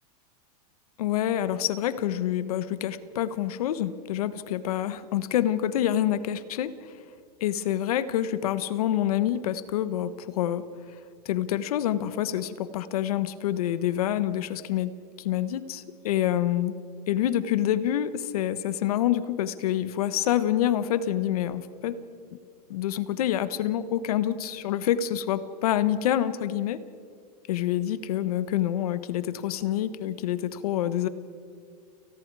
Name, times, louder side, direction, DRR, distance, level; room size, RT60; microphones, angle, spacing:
voice 1, 1.0-6.9 7.4-10.6 11.2-16.7 17.1-22.0 22.7-26.8 27.5-31.1, left 11 dB, 65° left, 14 dB, 1.2 m, -27 dB
29.5 x 19.5 x 4.8 m, 2.2 s
supercardioid pair, 180°, 21 cm